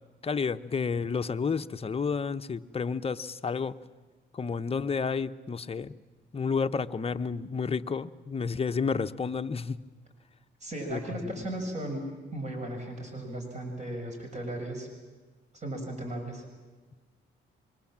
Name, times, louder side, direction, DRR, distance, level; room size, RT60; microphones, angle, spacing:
voice 1, 0.2-3.8 4.3-5.9 6.3-9.8 10.9-11.3, left 5 dB, 30° left, 0.9 m, -31 dB
voice 2, 10.6-12.0 12.3-14.9 15.5-16.4, right 1 dB, 35° right, 6.1 m, -36 dB
26.0 x 23.5 x 7.4 m
cardioid pair, 90°, 20 cm